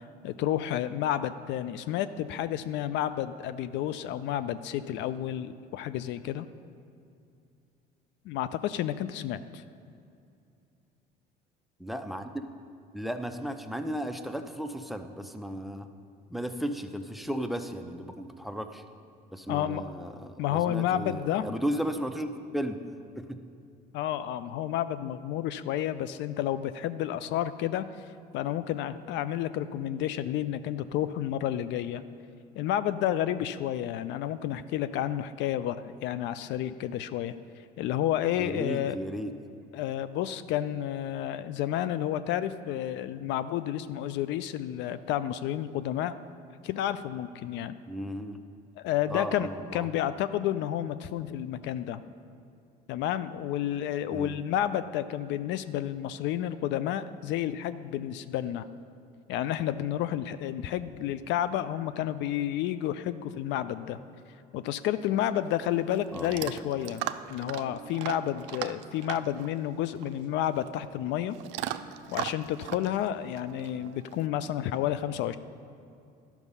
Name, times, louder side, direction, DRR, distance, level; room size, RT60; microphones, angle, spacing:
voice 1, 0.0-6.5 8.3-9.6 19.5-19.8 20.4-21.5 23.9-28.0 28.3-32.0 32.6-37.3 37.8-39.0 39.7-46.1 46.6-47.7 48.8-52.0 52.9-58.7 59.3-64.0 64.5-71.4 72.1-75.4, left 11 dB, 65° left, 13 dB, 0.4 m, -31 dB
voice 2, 11.8-12.4 12.9-15.9 16.3-18.8 19.3-22.3 22.5-22.8 23.2-23.5 38.4-39.3 47.9-48.4 49.1-49.9 54.1-54.4 66.1-66.5, equal, ahead, 8 dB, 0.7 m, -35 dB
Chewing mastication / Dog, 65.1-74.3, right 12 dB, 70° right, 0.5 m, -39 dB
12.0 x 5.9 x 5.5 m, 2.6 s
supercardioid pair, 80°, 20 cm